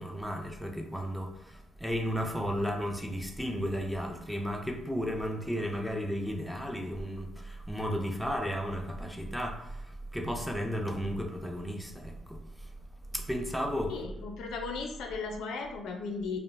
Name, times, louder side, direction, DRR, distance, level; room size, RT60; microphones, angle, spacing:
voice 1, 0.0-12.7 13.1-14.0, equal, ahead, 0.5 m, -34 dB
voice 2, 13.9-16.4, left 4 dB, 85° left, 0.4 m, -36 dB
2.3 x 2.1 x 3.2 m
cardioid pair, 90°, 0 cm